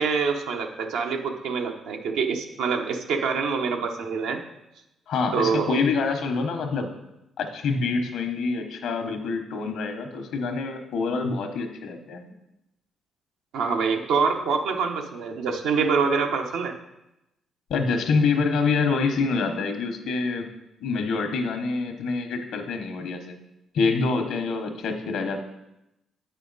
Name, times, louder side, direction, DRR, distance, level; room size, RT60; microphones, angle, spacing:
voice 1, 0.0-4.4 5.3-5.8 13.5-16.8, right 5 dB, 90° right, 3 dB, 0.9 m, -25 dB
voice 2, 5.1-6.9 7.4-12.2 17.7-20.5 20.8-23.4 23.7-25.4, left 4 dB, 80° left, 6 dB, 1.0 m, -26 dB
8.6 x 5.6 x 4.1 m, 0.90 s
cardioid pair, 90°, 0 cm